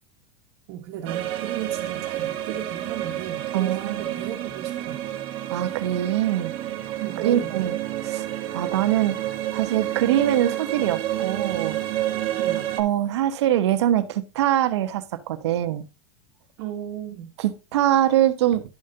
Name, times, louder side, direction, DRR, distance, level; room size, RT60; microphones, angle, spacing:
voice 1, 0.7-5.0 7.0-7.8 12.3-12.7 16.6-17.3, right 10 dB, 55° right, 1.5 m, -35 dB
sound 1, 1.1-12.8, right 13 dB, 40° right, 1.4 m, -29 dB
voice 2, 3.5-4.0 5.5-6.5 7.2-7.8 8.0-8.3 8.5-9.2 9.5-11.8 12.8-15.8 17.4-18.6, right 12 dB, 80° right, 1.1 m, -23 dB
11.5 x 5.1 x 2.8 m
supercardioid pair, 145°, 14 cm